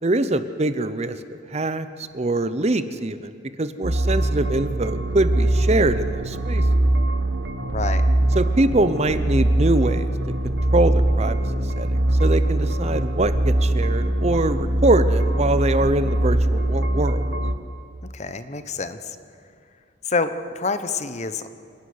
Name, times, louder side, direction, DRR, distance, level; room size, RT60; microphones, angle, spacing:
voice 1, 0.0-6.6 8.3-10.1 10.4-11.4 11.8-17.2, right 2 dB, 35° right, 12 dB, 0.8 m, -23 dB
sound 1, 3.8-17.5, right 1 dB, 60° right, 1.3 m, -22 dB
voice 2, 7.6-8.1 18.1-19.2 20.1-21.5, left 4 dB, 40° left, 11 dB, 0.9 m, -27 dB
27.5 x 11.5 x 9.7 m, 2.3 s
head